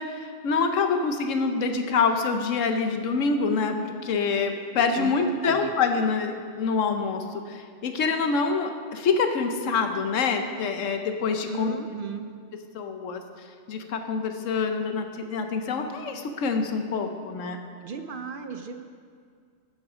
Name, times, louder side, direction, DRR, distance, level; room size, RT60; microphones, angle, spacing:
voice 1, 0.0-11.7 12.7-13.2 13.7-17.6, left 4 dB, 80° left, 6 dB, 1.2 m, -26 dB
voice 2, 5.0-5.7 11.4-12.3 17.8-18.8, right 5 dB, 55° right, 7 dB, 0.6 m, -36 dB
12.5 x 8.2 x 4.9 m, 2.2 s
omnidirectional pair, 1.3 m